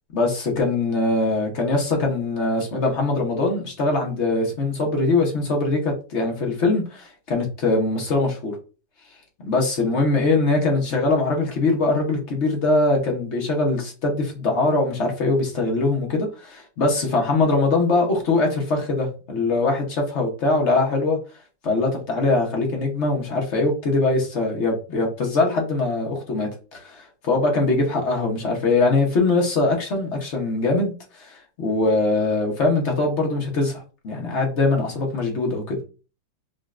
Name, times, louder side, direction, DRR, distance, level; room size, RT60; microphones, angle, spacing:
voice 1, 0.1-8.6 9.4-21.2 21.6-35.8, left 3 dB, 50° left, 1 dB, 0.9 m, -22 dB
5.1 x 2.2 x 2.4 m, 0.35 s
omnidirectional pair, 1.9 m